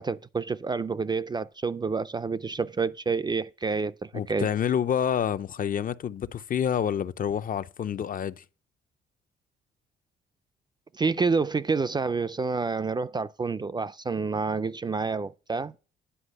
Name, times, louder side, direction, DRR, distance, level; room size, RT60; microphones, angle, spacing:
voice 1, 0.0-4.5 10.9-15.7, right 4 dB, 20° right, 0.4 m, -28 dB
voice 2, 4.1-8.4, left 8 dB, 45° left, 0.5 m, -28 dB
10.0 x 5.1 x 6.4 m
cardioid pair, 90°, 20 cm